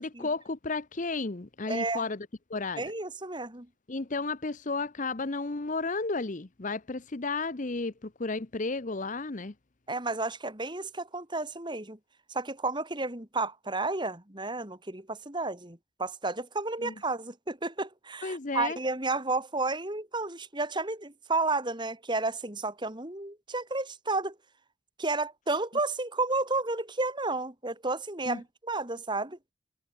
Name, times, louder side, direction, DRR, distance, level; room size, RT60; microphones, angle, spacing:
voice 1, 0.0-2.8 3.9-9.5 16.8-16.9 18.2-18.8 28.3-28.4, left 3 dB, 40° left, 0.8 m, -33 dB
voice 2, 1.7-2.1 2.8-3.7 9.9-12.0 12.3-24.3 25.0-29.4, right 3 dB, 25° right, 2.4 m, -32 dB
head